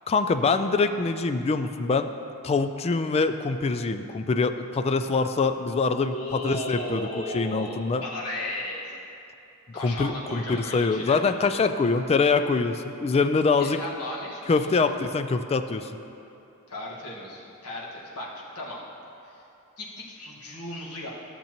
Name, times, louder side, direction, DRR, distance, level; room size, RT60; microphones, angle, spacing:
voice 1, 0.1-2.1 2.4-8.0 9.8-13.8 14.5-15.9, left 4 dB, 30° left, 8 dB, 0.3 m, -24 dB
voice 2, 6.1-8.9 9.7-11.2 13.5-15.0 16.7-18.8 19.2-19.4 19.8-21.1, left 1 dB, 85° left, -5 dB, 1.6 m, -35 dB
13.5 x 6.9 x 3.0 m, 2.8 s
head